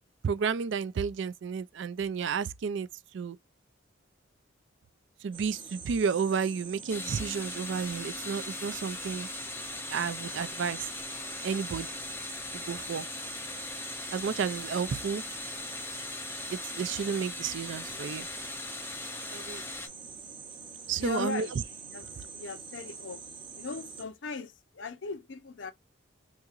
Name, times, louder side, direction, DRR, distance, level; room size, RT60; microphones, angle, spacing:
voice 1, 0.2-2.9 3.1-3.4 5.2-9.3 9.9-10.9 11.4-12.0 12.5-13.1 14.1-15.2 16.5-18.3 19.3-19.6 20.9-21.5, right 6 dB, 60° right, 0.4 m, -32 dB
sound 1, 5.3-24.0, right 5 dB, 25° right, 0.7 m, -45 dB
sound 2, 6.9-19.9, left 3 dB, 10° left, 0.4 m, -40 dB
voice 2, 21.0-21.5 21.9-22.0 22.3-23.2 23.6-25.7, left 4 dB, 65° left, 0.6 m, -38 dB
3.7 x 2.9 x 2.4 m
head